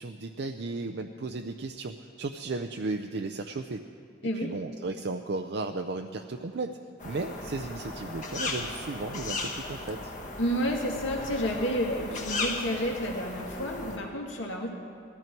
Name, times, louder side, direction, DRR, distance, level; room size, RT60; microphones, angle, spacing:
voice 1, 0.0-3.8 4.3-6.8 7.0-10.1, right 3 dB, 60° right, 5 dB, 0.5 m, -35 dB
voice 2, 4.2-4.5 10.4-14.7, equal, 80° left, 0 dB, 2.2 m, -30 dB
sound 1, 7.0-14.0, left 2 dB, 40° left, 1.2 m, -36 dB
18.5 x 13.5 x 4.6 m, 2.4 s
head